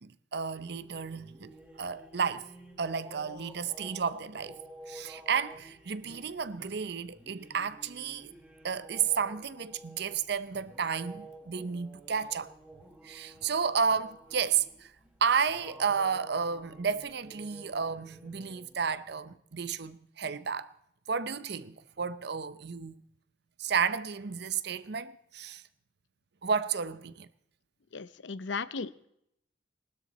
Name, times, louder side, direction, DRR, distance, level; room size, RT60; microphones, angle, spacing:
voice 1, 0.0-2.5 2.8-4.6 4.9-8.3 8.6-12.5 13.0-14.9 15.2-20.7 21.1-23.0 23.6-25.6 26.4-27.3, right 6 dB, 60° right, 0.7 m, -32 dB
sound 1, 0.5-19.1, right 1 dB, 10° right, 1.9 m, -52 dB
voice 2, 27.9-29.1, left 4 dB, 70° left, 0.7 m, -36 dB
19.5 x 12.5 x 4.2 m
head